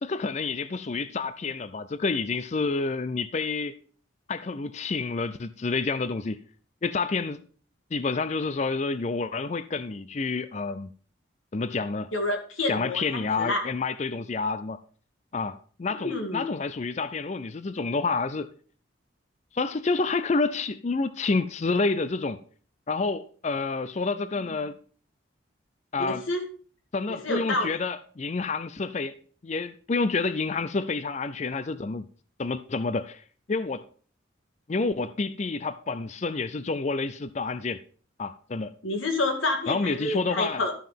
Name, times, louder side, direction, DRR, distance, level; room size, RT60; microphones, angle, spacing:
voice 1, 0.0-3.8 4.3-6.4 6.8-7.4 7.9-10.9 11.5-12.1 12.7-14.8 15.3-18.5 19.5-22.4 22.9-24.8 25.9-26.2 26.9-29.1 29.4-32.1 32.4-33.8 34.7-37.8 38.2-38.7 39.7-40.6, left 4 dB, 35° left, 0.4 m, -29 dB
voice 2, 12.1-13.6 16.0-16.5 26.0-26.4 27.1-27.7 38.8-40.7, left 2 dB, 90° left, 2.3 m, -28 dB
12.5 x 5.5 x 5.7 m
head